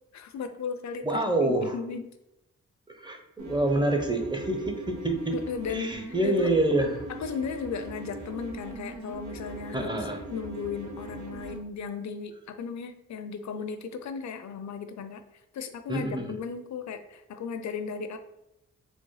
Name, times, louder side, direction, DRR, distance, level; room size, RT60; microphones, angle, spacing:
voice 1, 0.1-2.1 5.3-6.5 7.1-10.0 10.3-15.2 15.5-18.2, left 6 dB, 60° left, 9 dB, 0.5 m, -36 dB
voice 2, 1.0-1.8 2.9-5.4 5.7-7.1 9.7-10.2 15.9-16.4, right 2 dB, 15° right, 4 dB, 0.7 m, -27 dB
sound 1, 3.4-11.6, right 2 dB, 65° right, 0.8 m, -41 dB
4.0 x 2.0 x 3.2 m, 0.88 s
supercardioid pair, 40°, 32 cm